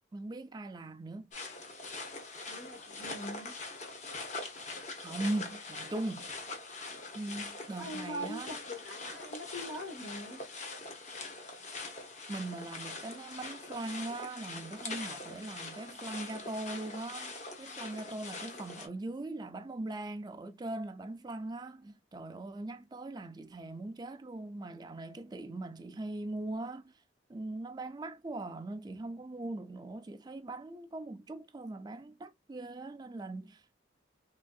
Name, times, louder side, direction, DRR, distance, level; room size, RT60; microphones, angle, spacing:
voice 1, 0.1-1.3 4.6-6.3 7.1-8.5 11.6-11.8 12.3-27.0 27.3-33.7, right 2 dB, 20° right, 0.3 m, -40 dB
sound 1, 1.3-18.9, left 3 dB, 40° left, 0.7 m, -43 dB
voice 2, 2.5-3.5 7.8-10.4, equal, 80° left, 1.1 m, -42 dB
3.3 x 2.5 x 2.2 m
head